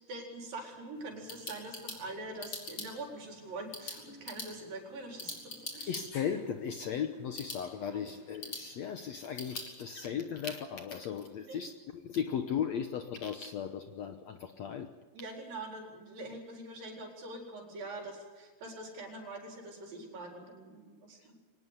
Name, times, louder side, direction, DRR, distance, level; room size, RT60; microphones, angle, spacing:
voice 1, 0.1-6.0 7.9-8.1 11.5-11.6 15.1-21.4, right 2 dB, 70° right, 2 dB, 5.8 m, -44 dB
sound 1, 0.9-9.7, left 3 dB, 35° left, 5.0 m, -46 dB
voice 2, 5.9-14.9, left 8 dB, 65° left, 7 dB, 1.7 m, -36 dB
24.0 x 19.5 x 8.2 m, 1.3 s
omnidirectional pair, 4.2 m